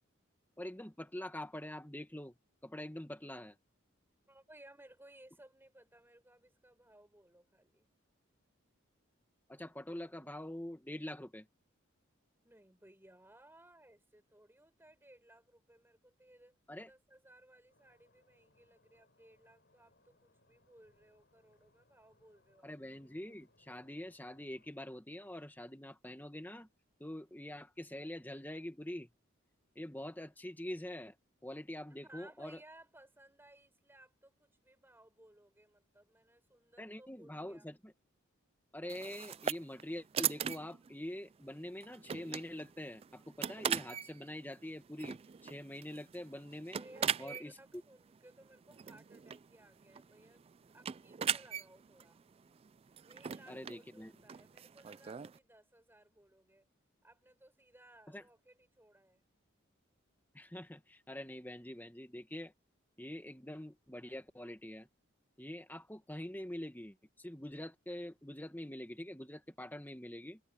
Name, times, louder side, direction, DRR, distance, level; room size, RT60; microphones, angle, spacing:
voice 1, 0.6-2.3 2.6-3.6 9.5-11.5 16.7-16.9 22.6-26.7 27.0-29.1 29.8-31.2 31.4-32.6 36.8-37.9 38.7-46.8 47.2-47.5 53.5-54.1 58.1-58.2 60.3-62.5 63.0-64.9 65.4-70.4, left 1 dB, 10° left, 1.9 m, -45 dB
voice 2, 4.3-7.9 12.4-16.6 16.8-22.7 31.9-37.7 46.7-50.4 50.7-52.2 53.1-56.7 57.0-59.2, right 1 dB, 10° right, 6.5 m, -61 dB
Stream, 17.7-24.7, left 2 dB, 55° left, 6.7 m, -72 dB
sound 1, 38.9-55.4, right 8 dB, 30° right, 0.3 m, -41 dB
head